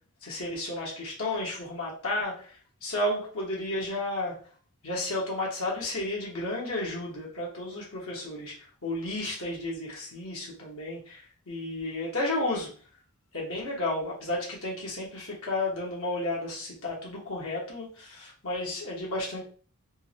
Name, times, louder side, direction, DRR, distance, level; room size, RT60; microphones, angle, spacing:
voice 1, 0.2-2.5 2.8-4.4 4.8-8.5 8.8-12.7 13.3-19.4, left 1 dB, 65° left, -4 dB, 1.3 m, -32 dB
3.6 x 3.2 x 2.9 m, 0.41 s
head